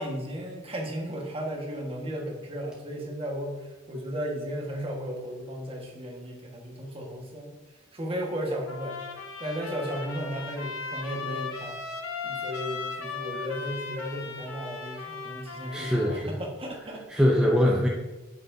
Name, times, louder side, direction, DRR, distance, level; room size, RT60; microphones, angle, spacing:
voice 1, 0.0-3.5 3.9-7.5 7.9-9.0 9.4-11.8 12.2-17.3, equal, 25° right, 0 dB, 1.5 m, -35 dB
Trumpet, 8.7-16.2, left 4 dB, 75° left, 1.1 m, -37 dB
voice 2, 15.7-16.4 17.1-17.9, equal, 5° right, -2 dB, 0.6 m, -22 dB
8.3 x 6.9 x 2.7 m, 1.1 s
head